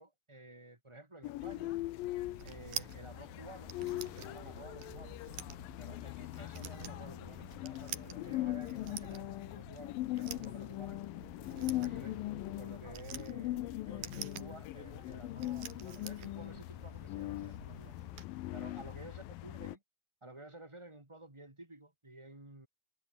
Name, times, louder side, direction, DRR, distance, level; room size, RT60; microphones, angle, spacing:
voice 1, 0.0-1.8 2.4-3.7 4.1-5.2 5.8-11.0 11.5-12.3 12.5-18.0 18.5-19.8 20.2-22.7, right 2 dB, 10° right, 1.9 m, -53 dB
sound 1, 1.2-19.8, left 17 dB, 85° left, 2.0 m, -41 dB
sound 2, 2.0-18.2, right 10 dB, 60° right, 3.4 m, -49 dB
omnidirectional pair, 5.2 m